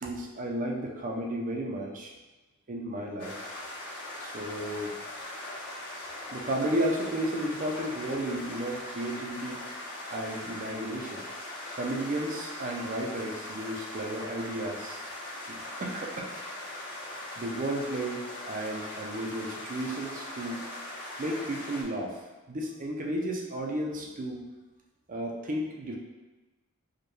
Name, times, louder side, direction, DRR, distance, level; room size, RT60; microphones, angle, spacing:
voice 1, 0.0-2.1 2.7-3.4 4.2-4.9 6.3-9.6 10.1-11.2 11.8-15.0 15.5-16.3 17.4-20.6 21.2-24.4 25.1-26.0, right 1 dB, 35° right, 0 dB, 0.5 m, -33 dB
sound 1, 3.2-21.8, left 1 dB, 75° left, 1.4 m, -40 dB
4.8 x 2.3 x 3.1 m, 1.2 s
head